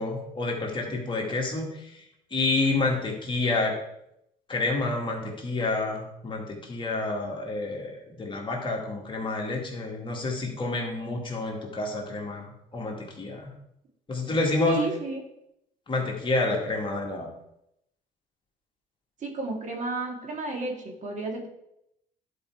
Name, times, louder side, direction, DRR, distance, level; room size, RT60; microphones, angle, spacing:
voice 1, 0.0-1.9 2.3-3.7 4.5-12.5 12.7-13.5 14.1-14.8 15.9-17.3, left 2 dB, 30° left, -1 dB, 2.0 m, -29 dB
voice 2, 14.2-15.2 19.2-21.5, right 3 dB, 45° right, 1 dB, 2.1 m, -33 dB
11.0 x 4.7 x 4.6 m, 0.80 s
cardioid pair, 110°, 17 cm